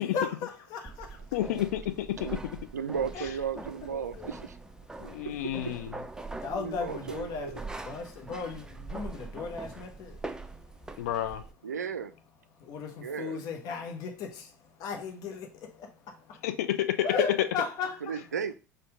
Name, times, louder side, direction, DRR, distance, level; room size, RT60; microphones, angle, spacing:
voice 1, 0.1-1.4 3.1-3.6 4.9-5.3 6.2-11.4 12.5-16.5 17.0-18.2, left 5 dB, 50° left, 1.1 m, -37 dB
sound 1, 0.9-11.5, right 3 dB, 10° right, 0.4 m, -43 dB
voice 2, 1.3-2.1 5.1-5.9 11.0-11.4 16.4-17.0, left 12 dB, 65° left, 0.5 m, -30 dB
voice 3, 2.7-4.6 5.2-5.7 6.5-7.6 11.6-12.1 13.0-13.4 18.0-18.5, right 7 dB, 80° right, 0.4 m, -35 dB
4.3 x 2.6 x 4.8 m
figure-of-eight pair, 70°, 9 cm